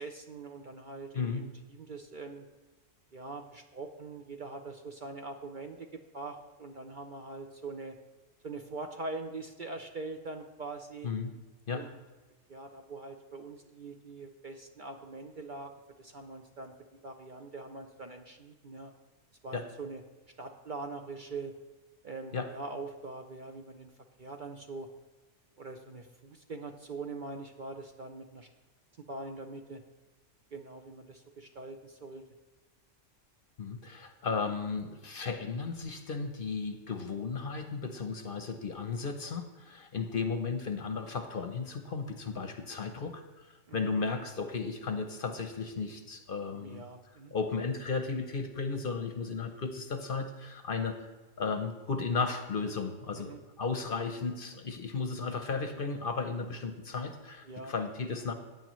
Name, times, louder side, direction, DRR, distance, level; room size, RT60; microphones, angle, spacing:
voice 1, 0.0-2.4 3.1-8.0 8.4-11.1 11.7-12.0 12.5-15.7 16.0-16.7 17.0-18.9 19.4-20.0 20.4-21.5 22.0-23.9 24.2-24.9 25.6-28.5 29.1-29.8 30.5-32.2 43.7-43.9 46.6-47.3 53.2-53.4 57.4-57.7, right 3 dB, 50° right, 5 dB, 0.7 m, -43 dB
voice 2, 33.6-46.8 47.3-51.1 51.4-58.3, left 4 dB, 50° left, 7 dB, 0.9 m, -35 dB
15.0 x 9.2 x 3.1 m, 1.2 s
omnidirectional pair, 1.3 m